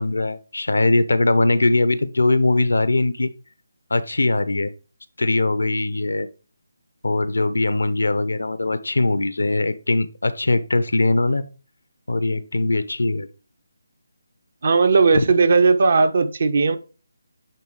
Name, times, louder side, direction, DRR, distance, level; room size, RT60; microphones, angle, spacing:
voice 1, 0.0-3.3 3.9-4.7 5.2-6.3 7.0-11.4 12.1-13.3 15.1-15.2, left 2 dB, 75° left, 14 dB, 0.8 m, -21 dB
voice 2, 14.6-16.8, right 4 dB, 50° right, 10 dB, 1.0 m, -17 dB
9.4 x 3.6 x 4.8 m, 0.34 s
figure-of-eight pair, 155°, 0 cm